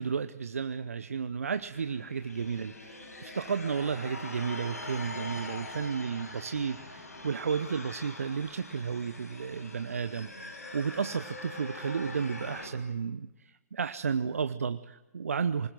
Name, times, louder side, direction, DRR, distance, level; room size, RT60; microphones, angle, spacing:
voice 1, 0.0-13.3 13.7-15.7, right 6 dB, 65° right, 11 dB, 0.9 m, -33 dB
sound 1, 1.4-12.7, left 2 dB, 75° left, 7.2 m, -43 dB
26.5 x 20.5 x 9.4 m, 1.0 s
figure-of-eight pair, 125°, 8 cm